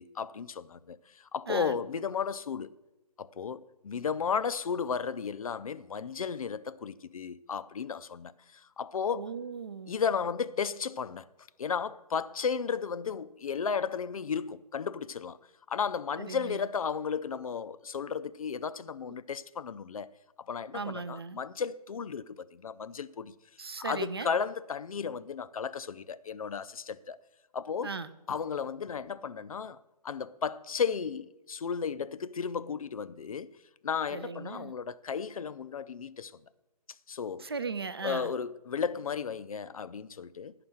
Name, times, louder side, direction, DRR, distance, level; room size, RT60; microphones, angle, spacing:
voice 1, 0.0-2.7 3.2-9.3 9.9-11.3 11.6-15.4 15.7-20.1 20.4-23.3 23.8-27.2 27.5-27.9 28.3-33.5 33.8-36.3 37.1-37.5 38.0-40.5, left 6 dB, 55° left, 0.4 m, -34 dB
voice 2, 9.1-9.9 16.2-16.6 20.7-21.4 23.6-24.3 27.8-28.1 34.1-34.7 37.4-38.3, right 5 dB, 40° right, 0.4 m, -37 dB
9.6 x 5.8 x 7.6 m
hypercardioid pair, 165°, 21 cm